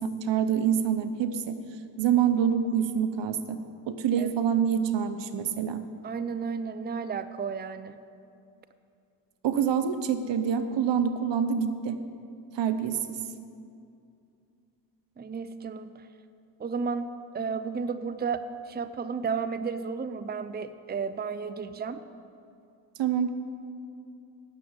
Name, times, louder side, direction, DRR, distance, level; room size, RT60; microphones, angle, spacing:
voice 1, 0.0-1.6 2.0-3.6 3.9-5.8 9.4-12.0 12.5-13.2 23.0-23.3, right 8 dB, 75° right, 10 dB, 0.8 m, -26 dB
voice 2, 6.0-8.0 15.2-16.1 16.6-22.0, right 5 dB, 20° right, 12 dB, 0.5 m, -33 dB
9.8 x 6.7 x 8.9 m, 2.5 s
supercardioid pair, 50°, 44 cm